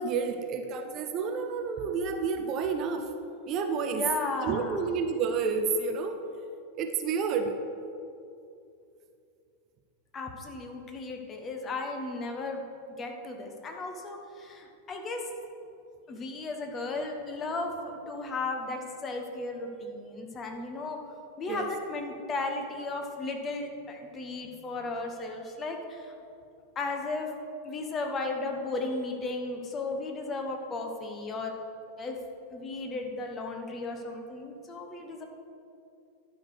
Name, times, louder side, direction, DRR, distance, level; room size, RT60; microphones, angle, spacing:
voice 1, 0.0-3.1 3.5-4.1 4.4-6.2 6.7-7.6 19.8-19.9 21.5-21.7, right 5 dB, 35° right, 6 dB, 0.7 m, -30 dB
voice 2, 3.9-4.8 10.1-12.6 12.9-15.2 16.1-21.0 21.4-26.1 26.7-27.3 27.6-31.5 32.0-32.2 32.5-35.2, left 3 dB, 25° left, 3 dB, 1.2 m, -35 dB
11.0 x 5.1 x 6.5 m, 2.6 s
figure-of-eight pair, 90°, 0 cm